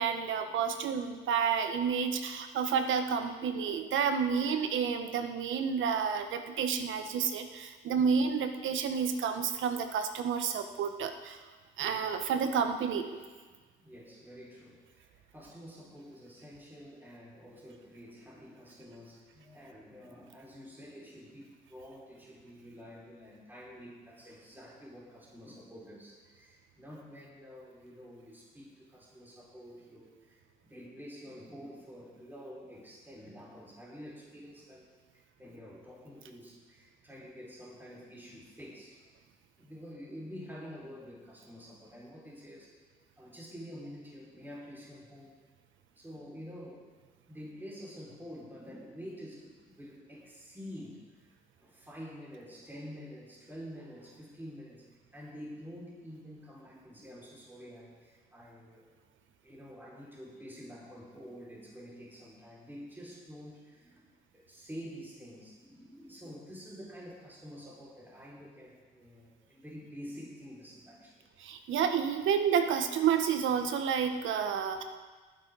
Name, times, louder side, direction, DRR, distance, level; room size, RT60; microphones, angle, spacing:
voice 1, 0.0-11.4 11.8-13.1 71.4-74.8, right 7 dB, 75° right, 7 dB, 1.2 m, -30 dB
voice 2, 6.9-7.3 8.0-8.1 11.8-12.0 13.8-34.8 35.1-39.0 39.6-42.7 43.2-45.3 46.0-46.9 47.3-51.0 51.6-54.8 55.1-58.9 59.4-64.0 64.3-71.2, equal, 10° right, -6 dB, 5.3 m, -48 dB
19.0 x 10.5 x 4.0 m, 1.4 s
cardioid pair, 90°, 20 cm